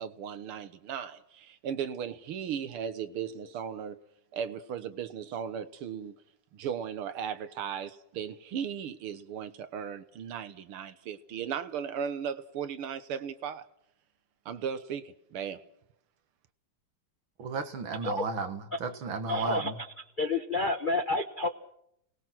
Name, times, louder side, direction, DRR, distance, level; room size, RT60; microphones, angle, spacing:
voice 1, 0.0-4.0 4.3-6.2 6.5-13.7 14.5-15.6, right 8 dB, 85° right, 2.0 m, -36 dB
voice 2, 17.4-19.8, right 4 dB, 65° right, 2.6 m, -34 dB
voice 3, 19.3-19.9 20.2-21.5, left 2 dB, 45° left, 0.6 m, -29 dB
30.0 x 19.5 x 6.1 m
omnidirectional pair, 2.4 m